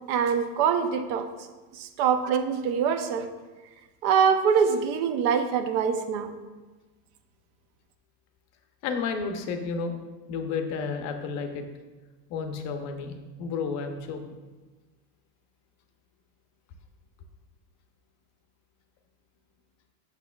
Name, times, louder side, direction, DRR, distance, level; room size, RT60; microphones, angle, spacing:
voice 1, 0.1-1.3 1.7-3.3 4.0-6.3, right 7 dB, 45° right, 8 dB, 0.6 m, -24 dB
voice 2, 8.8-10.0 10.3-11.6 12.3-14.2, left 5 dB, 35° left, 6 dB, 0.6 m, -31 dB
8.2 x 6.8 x 2.3 m, 1.2 s
supercardioid pair, 150°, 49 cm